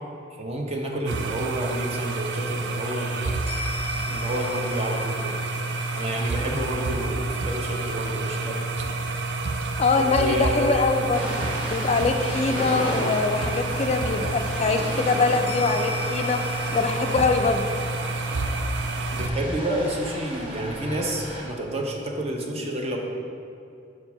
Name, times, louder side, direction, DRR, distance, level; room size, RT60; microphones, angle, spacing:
voice 1, 0.4-3.5 4.1-5.4 5.9-8.7 10.0-10.7 19.1-23.0, right 1 dB, 35° right, 1 dB, 0.8 m, -29 dB
sound 1, 1.1-19.3, right 3 dB, 80° right, 0.5 m, -29 dB
sound 2, 2.8-16.8, left 2 dB, 15° right, 1.5 m, -40 dB
voice 2, 9.8-16.4 16.7-17.7, left 4 dB, 35° left, 5 dB, 0.3 m, -23 dB
Ocean, 11.1-21.4, equal, 55° right, 1.6 m, -35 dB
4.9 x 4.5 x 5.9 m, 2.5 s
head